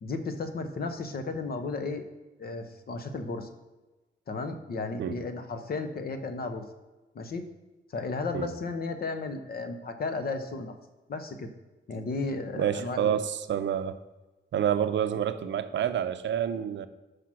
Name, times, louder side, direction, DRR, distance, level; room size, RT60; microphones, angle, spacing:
voice 1, 0.0-2.0 2.4-3.5 4.3-6.6 7.1-7.5 7.9-10.7 11.1-11.5 11.9-13.2, left 3 dB, 55° left, 8 dB, 0.8 m, -34 dB
voice 2, 12.5-14.0 14.5-16.9, right 9 dB, 75° right, 11 dB, 0.5 m, -28 dB
5.9 x 4.9 x 6.1 m, 1.1 s
wide cardioid pair, 125°, 19 cm